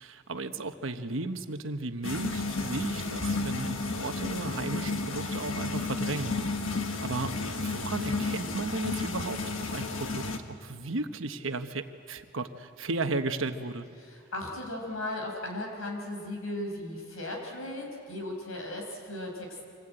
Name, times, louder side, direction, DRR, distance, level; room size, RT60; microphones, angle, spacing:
voice 1, 0.0-6.3 6.7-13.9, right 3 dB, 75° right, 8 dB, 1.2 m, -35 dB
sound 1, 2.0-10.4, left 3 dB, 70° left, 1.5 m, -32 dB
voice 2, 14.0-19.6, left 1 dB, 85° left, 1 dB, 5.5 m, -37 dB
25.0 x 19.5 x 9.0 m, 2.4 s
head